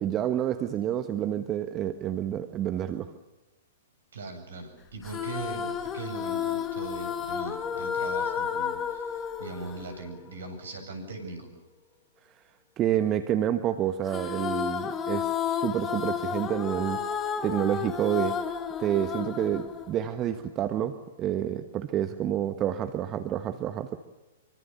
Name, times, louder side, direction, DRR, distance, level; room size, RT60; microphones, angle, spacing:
voice 1, 0.0-3.1 12.8-17.0 17.4-18.3 18.8-24.0, right 11 dB, 25° right, 9 dB, 1.4 m, -29 dB
voice 2, 4.1-11.5, right 3 dB, 65° right, 7 dB, 7.7 m, -40 dB
sound 1, 5.0-10.6 14.1-20.5, left 7 dB, 20° left, 1.9 m, -32 dB
26.0 x 24.5 x 6.9 m, 1.1 s
figure-of-eight pair, 110°, 0 cm